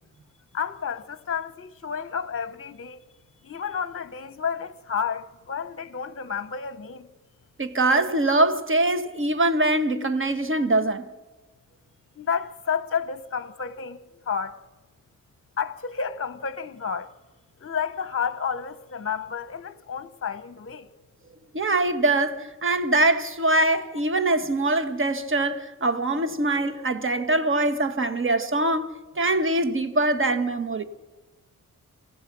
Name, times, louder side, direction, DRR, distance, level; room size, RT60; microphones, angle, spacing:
voice 1, 0.5-3.0 3.4-7.1 12.2-14.6 15.6-17.1 17.6-20.9, left 6 dB, 45° left, 1.0 m, -31 dB
voice 2, 7.6-11.0 21.5-30.8, right 2 dB, 40° right, 1.5 m, -23 dB
27.5 x 16.0 x 6.2 m
wide cardioid pair, 95°, 32 cm